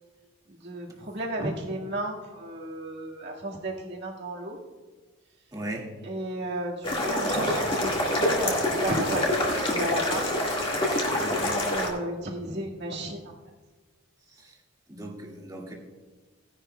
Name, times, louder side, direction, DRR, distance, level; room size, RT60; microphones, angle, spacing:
voice 1, 0.6-4.6 6.0-8.6 8.8-10.3 11.1-11.2 11.5-13.3, right 1 dB, 55° right, -1 dB, 1.8 m, -33 dB
voice 2, 5.5-5.9 11.2-11.6 14.3-14.6 14.9-15.7, right 1 dB, 20° right, -2 dB, 1.9 m, -39 dB
sound 1, 6.8-11.9, left 1 dB, 25° left, 1.8 m, -26 dB
17.0 x 10.5 x 2.2 m, 1.3 s
head